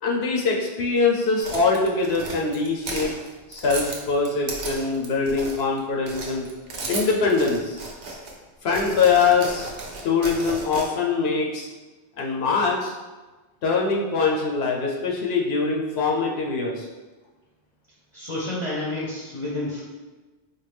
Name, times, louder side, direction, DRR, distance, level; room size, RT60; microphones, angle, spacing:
voice 1, 0.0-3.1 3.5-6.5 6.9-7.8 8.6-9.6 10.0-11.7 12.2-13.0 13.6-16.9, left 4 dB, 75° left, -2 dB, 0.8 m, -23 dB
sound 1, 1.4-5.8 6.1-8.3 8.7-10.8, right 3 dB, 65° right, 0.8 m, -34 dB
voice 2, 18.1-19.8, left 2 dB, 35° left, -8 dB, 0.7 m, -29 dB
4.3 x 2.2 x 3.3 m, 1.2 s
omnidirectional pair, 1.1 m